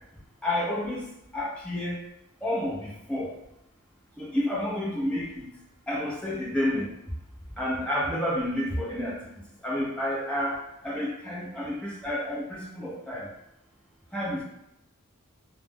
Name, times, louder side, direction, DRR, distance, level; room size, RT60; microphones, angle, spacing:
voice 1, 0.4-1.1 1.3-2.0 2.4-3.3 4.2-5.5 5.9-6.9 7.6-9.2 9.6-10.6 10.8-13.3 14.1-14.4, left 1 dB, 5° left, -7 dB, 0.6 m, -30 dB
2.4 x 2.1 x 3.3 m, 0.86 s
head